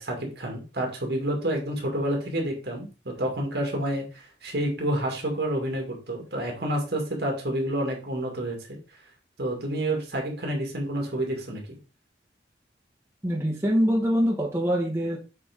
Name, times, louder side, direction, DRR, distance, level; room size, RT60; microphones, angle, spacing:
voice 1, 0.0-8.8 9.4-11.8, right 1 dB, 70° right, 1 dB, 1.9 m, -29 dB
voice 2, 13.2-15.2, equal, 15° right, -2 dB, 1.1 m, -24 dB
7.7 x 3.5 x 3.5 m, 0.32 s
head